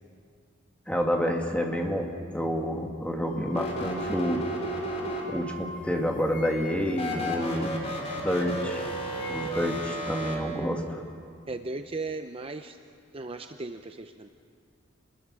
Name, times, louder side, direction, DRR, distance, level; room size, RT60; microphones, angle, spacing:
voice 1, 0.9-4.4 5.3-7.9 8.2-8.9 9.3-11.0, equal, 5° left, 1 dB, 2.1 m, -29 dB
sound 1, 3.2-8.5 8.8-9.9, left 2 dB, 65° left, 2.5 m, -45 dB
sound 2, 3.5-5.7 6.9-10.4, equal, 35° left, 3.6 m, -33 dB
voice 2, 11.5-12.8 13.1-14.3, right 3 dB, 30° right, 6 dB, 0.6 m, -36 dB
29.0 x 20.5 x 6.2 m, 2.3 s
head